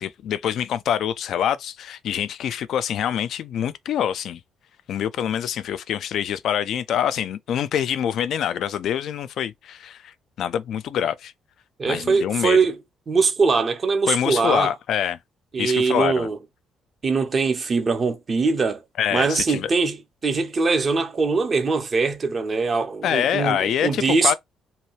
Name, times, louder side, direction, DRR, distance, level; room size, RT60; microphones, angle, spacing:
voice 1, 0.0-4.4 4.9-10.1 10.4-11.3 11.9-12.6 14.1-15.2 15.6-16.3 19.0-19.7 23.0-24.3, left 9 dB, 65° left, 0.3 m, -25 dB
voice 2, 11.8-12.8 13.1-14.7 15.5-16.4 17.0-18.8 19.1-24.3, right 4 dB, 45° right, 0.8 m, -22 dB
2.8 x 2.3 x 3.1 m
hypercardioid pair, 50°, 0 cm